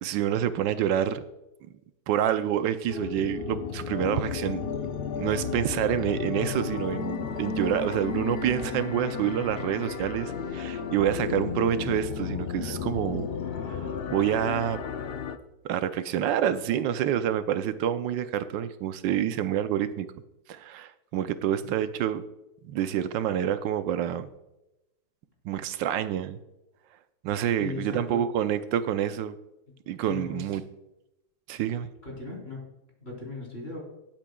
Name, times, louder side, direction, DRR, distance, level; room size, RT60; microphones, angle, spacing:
voice 1, 0.0-1.2 2.1-4.6 5.2-13.3 13.7-14.8 15.6-20.1 20.5-22.2 22.6-24.3 25.4-26.4 27.2-29.3 29.9-30.6 31.5-31.9, right 10 dB, 85° right, 11 dB, 1.4 m, -27 dB
sound 1, 2.9-15.4, left 6 dB, 85° left, 0.5 m, -33 dB
voice 2, 27.6-28.3 30.1-30.4 32.0-32.6 33.0-33.8, left 3 dB, 35° left, -2 dB, 3.9 m, -37 dB
18.5 x 8.9 x 2.3 m, 0.92 s
omnidirectional pair, 1.9 m